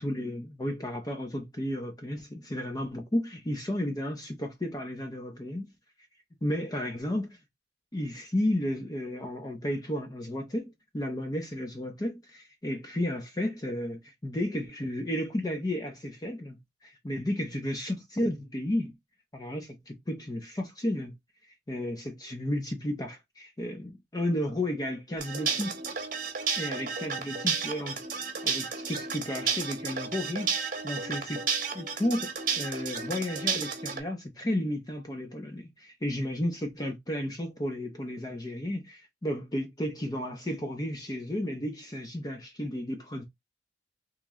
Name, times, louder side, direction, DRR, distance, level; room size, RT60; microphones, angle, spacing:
voice 1, 0.0-5.7 6.4-7.4 7.9-18.9 19.3-21.1 21.7-25.8 26.6-28.0 28.4-31.4 31.7-43.2, left 1 dB, 20° left, 0.6 m, -33 dB
sound 1, 25.2-34.0, right 6 dB, 50° right, 0.9 m, -32 dB
3.1 x 2.8 x 3.5 m
head